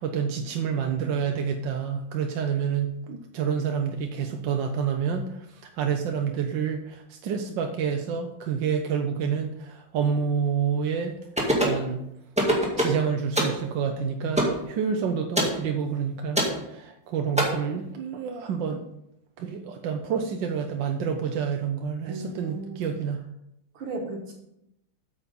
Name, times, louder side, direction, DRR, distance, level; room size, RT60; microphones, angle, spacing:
voice 1, 0.0-11.1 11.5-12.0 12.5-18.8 19.4-23.2, right 7 dB, 70° right, 4 dB, 1.4 m, -28 dB
sound 1, 11.4-11.8 12.4-13.0 13.4-13.6 14.4-14.6 15.4-15.6 16.4-16.6 17.4-17.5, equal, 5° right, 1.8 m, -23 dB
voice 2, 22.1-22.8 23.7-24.3, right 2 dB, 85° right, -3 dB, 2.2 m, -35 dB
8.7 x 7.2 x 5.3 m, 0.81 s
omnidirectional pair, 2.3 m